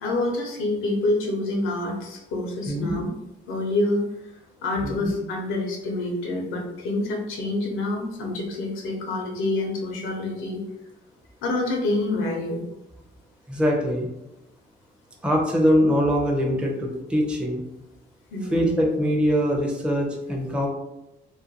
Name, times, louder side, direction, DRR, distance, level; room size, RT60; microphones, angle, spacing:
voice 1, 0.0-3.1 3.5-4.1 4.6-10.6 11.4-12.6 18.3-18.7, left 2 dB, 85° left, 1 dB, 0.7 m, -27 dB
voice 2, 2.7-3.0 4.8-5.1 13.5-14.1 15.2-17.6 18.5-20.7, equal, 5° right, 0 dB, 0.5 m, -23 dB
2.4 x 2.2 x 2.8 m, 0.91 s
cardioid pair, 90°, 20 cm